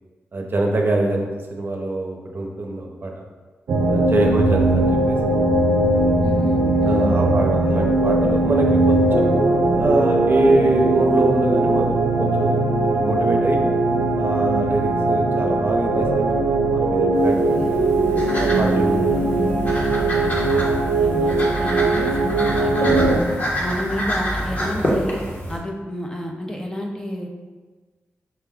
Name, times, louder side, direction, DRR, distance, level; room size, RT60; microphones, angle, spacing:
voice 1, 0.3-3.1 3.9-5.2 6.8-9.3 9.8-13.6 14.2-19.4, right 2 dB, 45° right, 1 dB, 0.6 m, -24 dB
sound 1, 3.7-23.2, right 2 dB, 85° right, 0.5 m, -19 dB
voice 2, 6.2-7.1 17.2-17.7 20.0-20.7 21.0-23.2 23.6-25.2 25.5-27.3, equal, 15° left, 1 dB, 0.5 m, -30 dB
sound 2, 17.1-25.6, equal, 35° left, 1.0 m, -27 dB
5.8 x 2.2 x 3.5 m, 1.3 s
cardioid pair, 70°, 5 cm